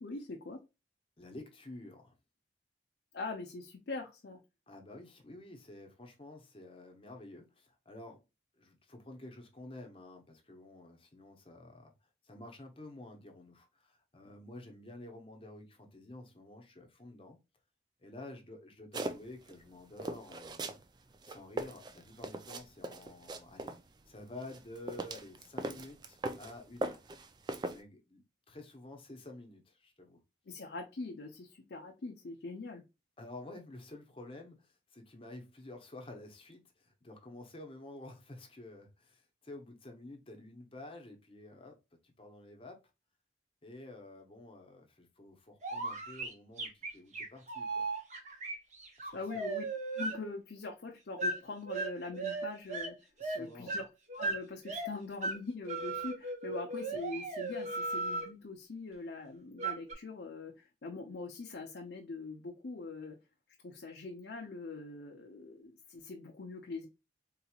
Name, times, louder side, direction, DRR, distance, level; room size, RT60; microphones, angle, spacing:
voice 1, 0.0-0.6 3.1-4.4 30.5-32.8 49.1-49.6 50.0-53.0 53.3-53.9 54.1-63.2 63.6-66.9, left 3 dB, 75° left, 0.6 m, -42 dB
voice 2, 1.2-2.1 4.7-8.2 8.6-11.9 12.2-17.4 18.0-20.8 21.2-23.7 24.1-27.0 27.7-30.2 33.2-41.8 42.0-42.8 43.6-47.9 49.0-49.4 53.2-53.9, left 2 dB, 30° left, 0.8 m, -50 dB
sound 1, 18.9-19.5 20.0-20.8 21.1-23.8 24.4-26.5 26.8-27.8, right 2 dB, 25° right, 0.3 m, -39 dB
sound 2, 45.6-50.2 51.2-51.4 51.7-52.9 53.2-54.9 55.2-55.4 55.7-58.3 59.6-59.9, right 3 dB, 40° right, 0.9 m, -36 dB
3.9 x 2.9 x 2.3 m
head